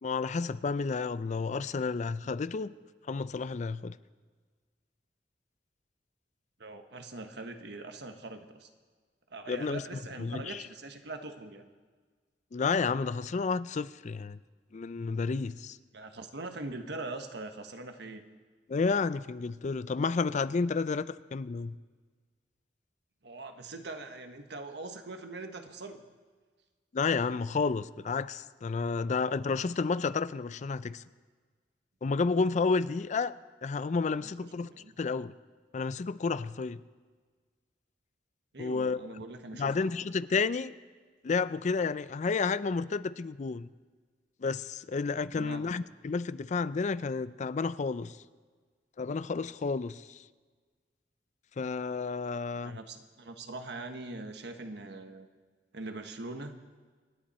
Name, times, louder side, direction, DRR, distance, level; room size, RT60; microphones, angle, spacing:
voice 1, 0.0-2.7 3.1-4.0 9.5-9.8 10.2-10.6 12.5-14.4 14.7-15.8 18.7-21.8 26.9-31.0 32.0-33.3 33.6-34.7 35.0-35.3 35.7-36.8 38.6-39.0 39.6-40.7 41.2-43.7 44.4-48.2 49.0-50.2 51.6-52.8, left 4 dB, 40° left, 16 dB, 0.4 m, -31 dB
voice 2, 6.6-8.7 9.3-11.7 15.9-18.2 23.2-26.0 34.2-34.9 38.5-39.7 45.3-45.7 52.6-55.3 55.7-56.6, right 2 dB, 70° right, 6 dB, 1.3 m, -42 dB
26.5 x 10.5 x 4.3 m, 1.5 s
head